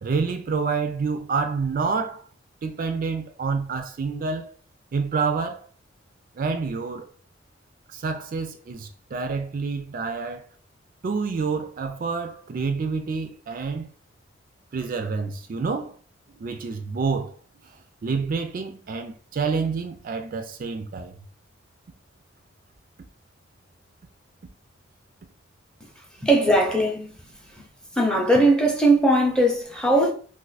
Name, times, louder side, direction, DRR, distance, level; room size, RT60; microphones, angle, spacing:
voice 1, 0.0-2.2 2.6-4.5 4.9-5.7 6.4-7.1 7.9-10.5 11.0-13.9 14.7-16.0 16.4-17.3 17.6-17.7 18.0-21.2, right 4 dB, 50° right, 0.4 m, -28 dB
voice 2, 26.2-27.1 28.0-30.1, right 1 dB, 5° left, 0.6 m, -19 dB
2.5 x 2.4 x 3.9 m
head